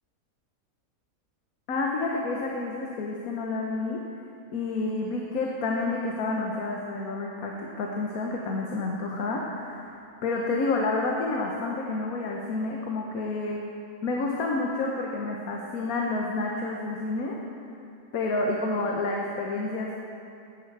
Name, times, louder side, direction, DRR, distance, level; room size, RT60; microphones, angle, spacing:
voice 1, 1.7-4.0 4.5-9.9 10.2-13.6 14.0-17.4 18.1-19.9, left 3 dB, 75° left, -1 dB, 1.5 m, -29 dB
14.5 x 10.0 x 4.7 m, 2.6 s
omnidirectional pair, 1.6 m